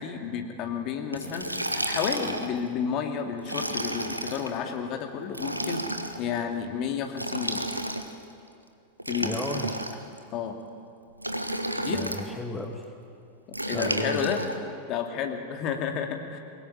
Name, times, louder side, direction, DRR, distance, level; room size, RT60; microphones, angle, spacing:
voice 1, 0.0-1.6 1.9-5.8 6.2-7.7 9.1-9.4 10.3-10.6 11.8-12.1 13.7-14.4 14.9-16.4, left 7 dB, 40° left, 4 dB, 2.5 m, -31 dB
Liquid, 1.1-2.6 3.4-4.5 5.3-6.2 7.1-8.2 9.0-10.2 11.2-12.3 13.5-14.5, right 1 dB, 85° right, 1.4 m, -31 dB
voice 2, 9.2-9.9 11.9-12.9 13.7-14.3, left 2 dB, 10° left, 3 dB, 2.0 m, -35 dB
23.0 x 20.0 x 9.0 m, 2.5 s
figure-of-eight pair, 90°, 0 cm